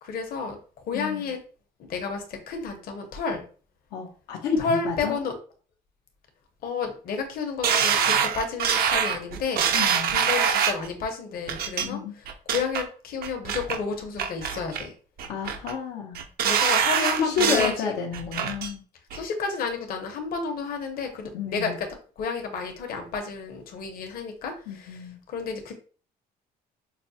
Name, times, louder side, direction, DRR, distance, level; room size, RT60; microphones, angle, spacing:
voice 1, 0.0-0.6 0.9-1.4 1.9-3.5 4.6-5.3 6.6-9.7 10.0-14.9 16.4-18.0 19.1-21.9 22.2-25.7, left 5 dB, 60° left, 4 dB, 1.0 m, -31 dB
voice 2, 0.9-1.3 3.9-5.2 9.7-10.2 11.8-12.1 15.3-16.2 17.2-18.8 21.3-21.8 24.7-25.2, left 6 dB, 85° left, 0 dB, 0.8 m, -30 dB
sound 1, 7.6-10.9 11.5-11.8 12.3-12.8 13.2-13.8 14.2-14.9 15.2-15.7 16.1-17.8 18.1-18.7 19.1-19.2, right 7 dB, 65° right, 0.6 m, -24 dB
5.8 x 2.1 x 2.8 m, 0.40 s
cardioid pair, 110°, 17 cm